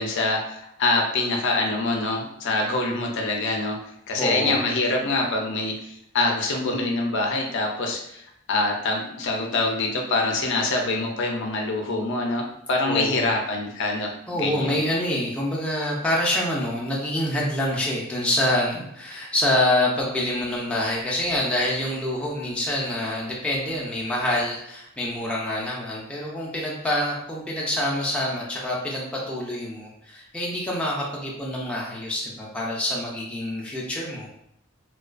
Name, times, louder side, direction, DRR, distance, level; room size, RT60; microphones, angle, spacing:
voice 1, 0.0-3.8 4.1-14.8, left 2 dB, 60° left, 1 dB, 0.4 m, -25 dB
voice 2, 4.2-4.6 12.9-13.3 14.3-34.3, left 1 dB, 5° left, -4 dB, 0.4 m, -26 dB
2.3 x 2.2 x 2.4 m, 0.74 s
head